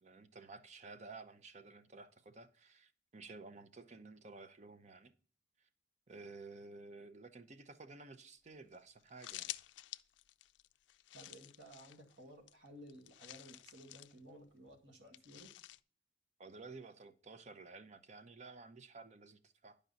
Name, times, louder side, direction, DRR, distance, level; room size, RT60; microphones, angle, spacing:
voice 1, 0.0-5.1 5.6-5.7 6.1-9.6 16.4-19.8, right 3 dB, 40° right, 0.6 m, -53 dB
sound 1, 8.5-8.6 8.7-8.8 9.0-12.2 12.5-14.2 15.1-15.8, left 15 dB, 75° left, 0.3 m, -50 dB
voice 2, 11.1-15.5, equal, 90° right, 1.9 m, -56 dB
10.5 x 5.2 x 4.0 m
head